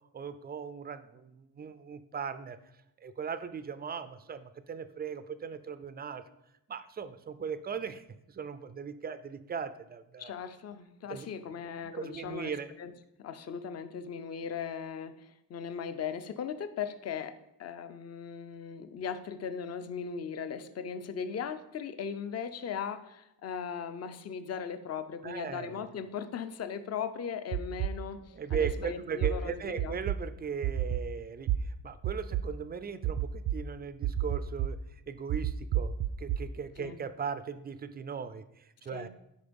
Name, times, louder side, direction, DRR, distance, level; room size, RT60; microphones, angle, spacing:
voice 1, 0.1-2.6 3.0-6.2 6.7-10.3 11.1-11.3 11.9-12.7 25.2-25.8 28.3-34.8 35.1-39.1, right 6 dB, 25° right, 13 dB, 0.4 m, -38 dB
voice 2, 10.2-12.9 13.2-29.9 36.8-37.0 38.9-39.1, left 7 dB, 40° left, 10 dB, 0.6 m, -38 dB
sound 1, 27.5-27.9 28.5-28.7 29.2-29.3 29.8-30.2 30.6-31.0 31.5-31.6 32.0-32.4 33.0-33.6 34.0-34.7 35.3-36.4, right 13 dB, 70° right, 0.6 m, -29 dB
12.5 x 5.1 x 5.2 m, 0.86 s
cardioid pair, 165°, 41 cm